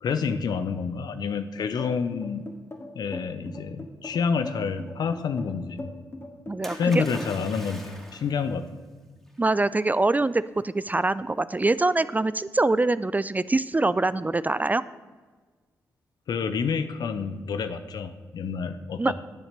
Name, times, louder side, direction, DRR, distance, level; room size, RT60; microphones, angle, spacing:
voice 1, 0.0-2.4 2.9-5.8 6.7-8.7 16.3-19.1, left 5 dB, 70° left, 11 dB, 0.7 m, -28 dB
sound 1, 1.8-7.0, left 2 dB, 35° left, 2.2 m, -39 dB
voice 2, 6.5-7.0 9.4-14.8 19.0-19.1, right 2 dB, 20° right, 16 dB, 0.4 m, -24 dB
Splash splatter, 6.6-8.4 9.4-9.5, equal, 5° left, 2.7 m, -41 dB
10.5 x 7.1 x 6.8 m, 1.4 s
supercardioid pair, 45°, 7 cm